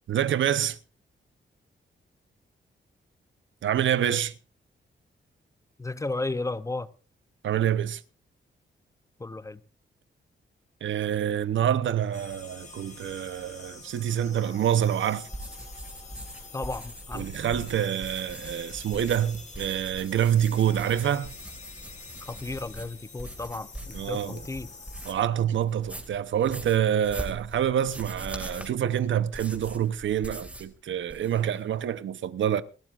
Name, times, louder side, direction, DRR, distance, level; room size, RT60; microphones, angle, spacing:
voice 1, 0.1-0.8 3.6-4.3 7.4-8.0 10.8-15.3 17.1-21.3 23.9-24.4 25.1-32.6, right 10 dB, 80° right, 0.8 m, -26 dB
voice 2, 5.8-6.9 9.2-9.6 16.5-17.3 22.2-24.7, left 2 dB, 15° left, 0.6 m, -34 dB
sound 1, 12.1-25.1, left 4 dB, 35° left, 2.7 m, -47 dB
sound 2, 15.3-25.3 25.7-30.8 31.0-31.6, right 1 dB, 5° right, 2.2 m, -42 dB
28.0 x 12.0 x 2.5 m
wide cardioid pair, 165°, 20 cm